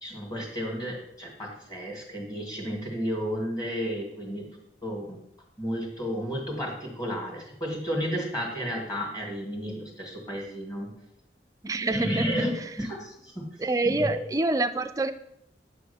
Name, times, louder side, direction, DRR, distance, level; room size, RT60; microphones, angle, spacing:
voice 1, 0.0-4.5 4.8-5.2 5.6-10.9 11.8-12.5 12.8-13.5 13.8-14.2, equal, 25° left, -1 dB, 2.2 m, -32 dB
voice 2, 11.6-12.3 13.6-15.1, right 2 dB, 20° right, 9 dB, 0.4 m, -26 dB
9.4 x 3.5 x 6.9 m, 0.74 s
head